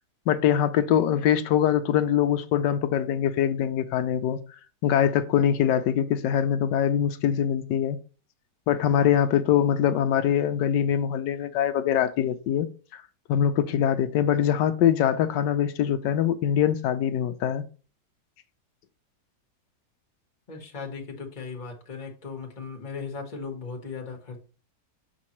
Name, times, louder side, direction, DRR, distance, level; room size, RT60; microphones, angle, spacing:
voice 1, 0.3-4.4 4.8-8.0 8.7-13.0 13.3-17.6, left 9 dB, 85° left, 1.2 m, -23 dB
voice 2, 20.5-24.4, left 5 dB, 30° left, 1.3 m, -37 dB
7.3 x 4.5 x 3.0 m
omnidirectional pair, 1.8 m